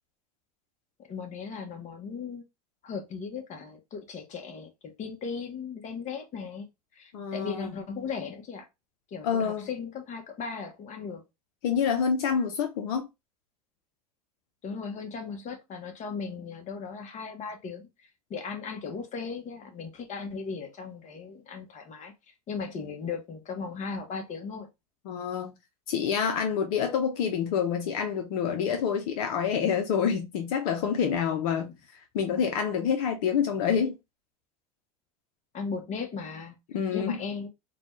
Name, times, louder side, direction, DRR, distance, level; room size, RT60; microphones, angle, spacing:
voice 1, 1.0-2.4 2.8-6.6 6.9-8.7 9.1-11.2 14.6-17.9 18.3-22.1 22.5-24.7 35.5-36.5 36.9-37.5, left 5 dB, 40° left, 1.1 m, -37 dB
voice 2, 7.1-7.7 9.2-9.7 11.6-13.1 25.1-25.5 25.9-31.7 32.1-34.0 36.7-37.2, left 7 dB, 70° left, 0.7 m, -27 dB
3.9 x 2.3 x 3.1 m
hypercardioid pair, 100°, 19 cm